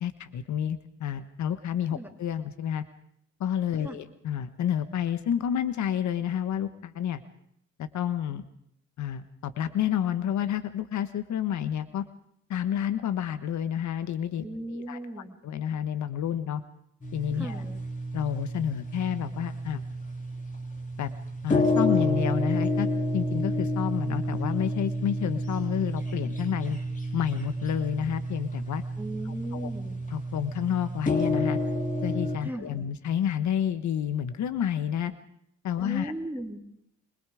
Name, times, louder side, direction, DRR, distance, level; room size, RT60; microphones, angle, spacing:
voice 1, 0.0-2.8 3.4-7.2 7.8-8.4 9.0-12.1 12.5-14.4 14.7-16.6 17.1-17.6 18.1-19.8 21.0-21.1 21.4-26.8 27.1-28.8 29.5-29.7 30.1-31.6 32.0-35.1 35.6-36.1, left 9 dB, 70° left, 12 dB, 1.3 m, -29 dB
voice 2, 14.4-15.4 17.3-17.8 29.0-30.0 32.4-32.9 35.8-36.6, right 1 dB, 5° right, 2 dB, 3.5 m, -37 dB
sound 1, 17.0-32.4, left 1 dB, 25° left, 3.0 m, -30 dB
27.5 x 22.5 x 5.0 m, 0.73 s
cardioid pair, 90°, 30 cm